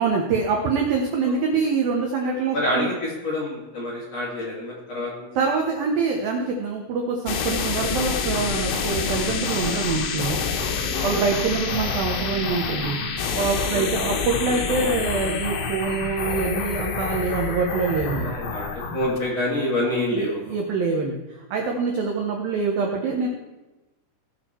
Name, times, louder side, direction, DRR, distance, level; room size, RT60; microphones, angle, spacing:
voice 1, 0.0-2.9 5.4-10.4 11.0-13.0 13.3-18.4 20.1-23.3, right 4 dB, 75° right, 1 dB, 2.2 m, -25 dB
voice 2, 1.2-1.6 2.5-5.3 10.9-11.2 13.7-14.2 18.2-20.4, left 1 dB, 40° left, -5 dB, 2.8 m, -27 dB
sound 1, 7.3-19.2, left 5 dB, 85° left, 3.8 m, -27 dB
18.5 x 6.3 x 4.5 m, 1.1 s
omnidirectional pair, 5.8 m